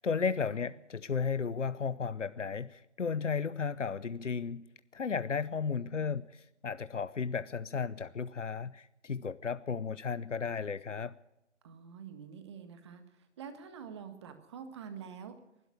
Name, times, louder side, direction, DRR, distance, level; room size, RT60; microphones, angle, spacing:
voice 1, 0.0-4.7 4.9-11.1, left 5 dB, 80° left, 16 dB, 0.9 m, -34 dB
voice 2, 5.6-6.2 11.6-15.4, right 7 dB, 25° right, 9 dB, 1.7 m, -47 dB
21.5 x 12.5 x 10.0 m, 0.88 s
figure-of-eight pair, 155°, 36 cm